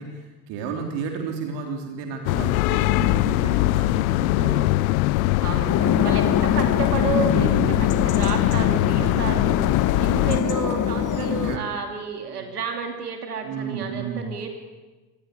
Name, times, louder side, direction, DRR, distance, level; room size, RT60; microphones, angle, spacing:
voice 1, 0.0-5.2 5.5-6.1 7.2-8.1 8.9-9.7 11.4-11.7 12.3-12.5 13.4-14.3, right 5 dB, 60° right, 3 dB, 3.8 m, -33 dB
sound 1, 2.3-10.4, left 18 dB, 65° left, 0.8 m, -22 dB
voice 2, 4.4-4.7 5.4-9.5 10.0-14.5, right 5 dB, 85° right, 4 dB, 2.9 m, -31 dB
sound 2, 5.7-11.6, left 9 dB, 40° left, 2.0 m, -24 dB
25.5 x 19.5 x 9.7 m, 1.2 s
figure-of-eight pair, 60°, 45 cm